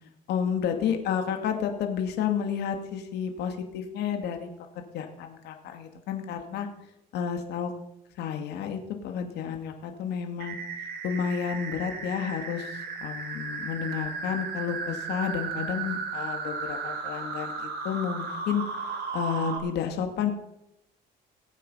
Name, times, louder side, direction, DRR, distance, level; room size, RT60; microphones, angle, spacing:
voice 1, 0.3-6.7 7.1-7.7 8.2-10.6 11.0-18.6 19.1-20.3, left 7 dB, 80° left, 5 dB, 2.4 m, -31 dB
sound 1, 10.4-19.6, right 5 dB, 75° right, 4.0 m, -35 dB
19.5 x 8.5 x 5.6 m, 0.82 s
cardioid pair, 110°, 17 cm